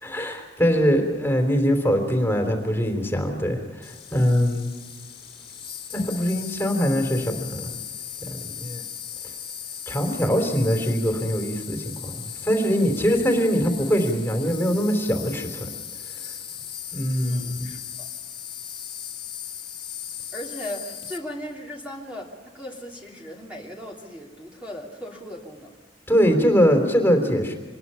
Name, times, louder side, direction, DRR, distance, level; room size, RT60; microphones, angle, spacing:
voice 1, 0.0-4.7 5.9-7.7 8.2-8.8 9.9-15.7 16.9-17.7 26.1-27.6, equal, 15° left, 3 dB, 3.4 m, -22 dB
Insect, 3.8-21.2, left 9 dB, 30° left, 2.6 m, -37 dB
voice 2, 17.2-18.1 20.3-25.7, equal, 5° right, -3 dB, 3.0 m, -37 dB
26.0 x 20.5 x 5.7 m, 1.4 s
head